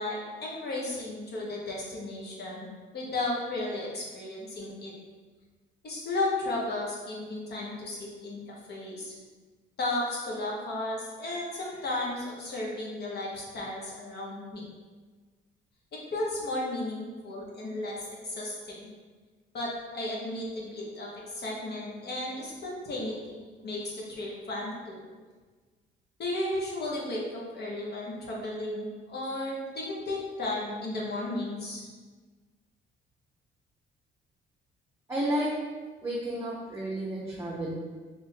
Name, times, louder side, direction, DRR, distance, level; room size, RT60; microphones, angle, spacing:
voice 1, 0.0-2.7 2.9-4.9 5.8-9.1 9.8-14.6 16.1-18.0 18.2-18.9 19.5-25.0 26.2-31.8, left 2 dB, 55° left, -4 dB, 1.2 m, -34 dB
voice 2, 35.1-35.5 36.0-37.8, right 1 dB, 15° right, -5 dB, 0.7 m, -31 dB
3.6 x 2.5 x 4.3 m, 1.4 s
cardioid pair, 90°, 20 cm